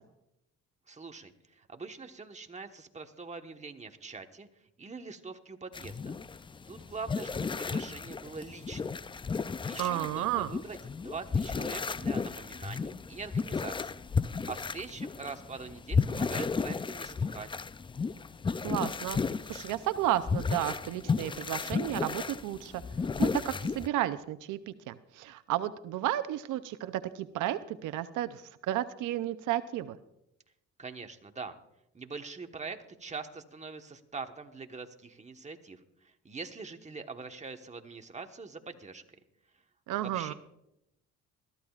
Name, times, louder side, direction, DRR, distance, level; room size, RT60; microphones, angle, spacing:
voice 1, 0.9-4.5 4.8-6.2 6.7-9.0 9.6-14.0 14.4-17.5 30.8-31.6 31.9-39.0 40.0-40.3, right 4 dB, 25° right, 5 dB, 1.2 m, -43 dB
sound 1, 5.7-23.9, left 5 dB, 15° left, 0.3 m, -33 dB
voice 2, 9.8-10.5 18.6-19.2 19.4-22.8 23.2-30.0 39.9-40.3, right 13 dB, 85° right, 12 dB, 0.6 m, -32 dB
21.5 x 13.5 x 2.4 m, 0.84 s
cardioid pair, 90°, 30 cm